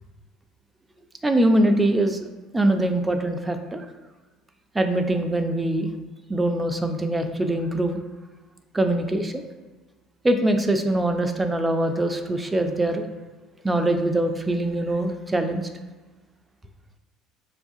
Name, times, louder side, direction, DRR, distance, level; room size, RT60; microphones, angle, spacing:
voice 1, 1.2-2.2 2.5-3.9 4.7-5.9 6.3-8.0 8.7-9.5 10.2-13.0 13.6-15.6, right 1 dB, 15° right, 5 dB, 0.4 m, -23 dB
5.3 x 2.3 x 2.6 m, 1.3 s
supercardioid pair, 85°, 0 cm